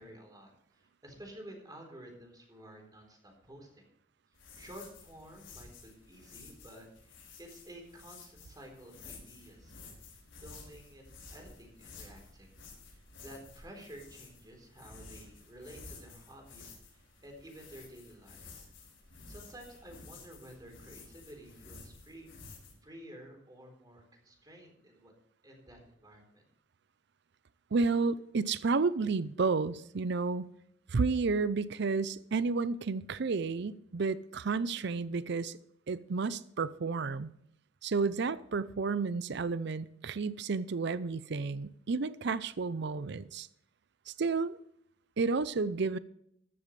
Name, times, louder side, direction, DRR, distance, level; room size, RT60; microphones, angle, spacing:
voice 1, 0.0-3.9 4.6-9.8 10.4-12.5 12.9-18.7 19.3-22.3 22.8-25.1 25.4-26.4, right 1 dB, 20° right, 2 dB, 3.8 m, -52 dB
sound 1, 4.3-22.7, left 4 dB, 70° left, 5.4 m, -53 dB
voice 2, 27.7-30.5 30.9-35.6 35.9-37.3 37.8-43.5 44.1-44.6 45.2-46.0, right 4 dB, 60° right, 16 dB, 0.5 m, -31 dB
14.0 x 12.5 x 3.2 m, 0.72 s
head